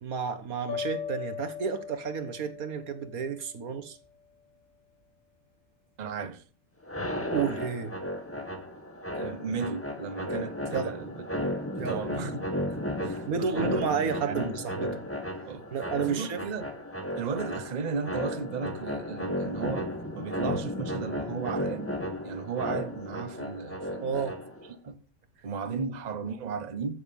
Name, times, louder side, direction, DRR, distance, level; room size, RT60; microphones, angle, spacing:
voice 1, 0.0-4.0 7.3-8.0 10.7-10.9 11.8-12.0 13.0-15.0 15.7-16.4 24.0-24.4, right 6 dB, 90° right, 1.8 m, -31 dB
sound 1, 0.7-3.8, left 8 dB, 75° left, 3.8 m, -39 dB
voice 2, 6.0-6.4 9.1-11.1 11.4-12.4 12.7-15.0 15.4-15.6 16.0-16.7 17.2-21.9 22.2-24.4 24.7-25.0 25.4-27.0, right 5 dB, 35° right, 0.9 m, -35 dB
sound 2, 6.8-24.7, left 1 dB, 10° left, 1.7 m, -34 dB
15.0 x 6.7 x 5.4 m
omnidirectional pair, 1.5 m